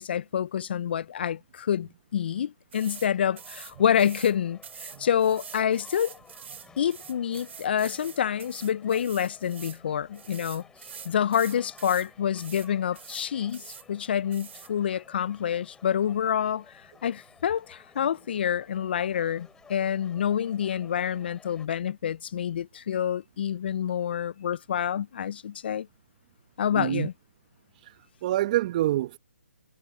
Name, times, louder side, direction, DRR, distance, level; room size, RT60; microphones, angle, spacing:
voice 1, 0.0-6.1 6.8-10.6 11.0-16.6 17.0-25.9 26.6-27.1, left 9 dB, 45° left, 0.7 m, -27 dB
sound 1, 2.7-21.7, left 6 dB, 10° left, 4.6 m, -55 dB
sound 2, 2.7-3.1 3.4-4.3 4.6-9.8 10.1-12.1 12.4-12.7 12.9-13.9 14.3-14.7, right 7 dB, 55° right, 2.7 m, -45 dB
voice 2, 26.7-27.1 28.2-29.2, right 14 dB, 30° right, 1.1 m, -26 dB
figure-of-eight pair, 150°, 8 cm